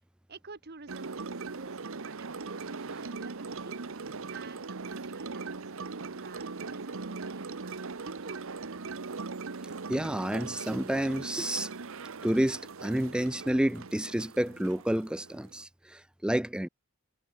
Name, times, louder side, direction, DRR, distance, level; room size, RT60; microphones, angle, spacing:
voice 1, 0.3-3.8 4.3-5.6 6.0-8.5, right 3 dB, 45° right, 1.4 m, -50 dB
sound 1, 0.9-15.6, right 4 dB, 65° right, 0.9 m, -40 dB
voice 2, 9.9-11.7 12.2-16.7, right 1 dB, 5° right, 0.4 m, -29 dB
head